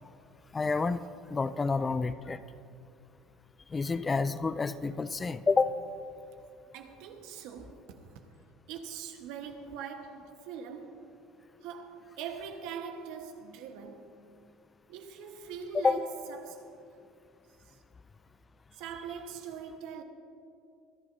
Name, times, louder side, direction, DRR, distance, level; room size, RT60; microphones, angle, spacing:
voice 1, 0.5-1.0 1.3-2.4 3.7-5.7 15.7-16.0, left 4 dB, 25° left, 0.4 m, -28 dB
voice 2, 6.7-8.2 8.7-11.1 11.6-14.2 14.9-16.7 18.7-20.0, right 7 dB, 70° right, 1.2 m, -42 dB
24.0 x 11.0 x 2.7 m
supercardioid pair, 85°, 0 cm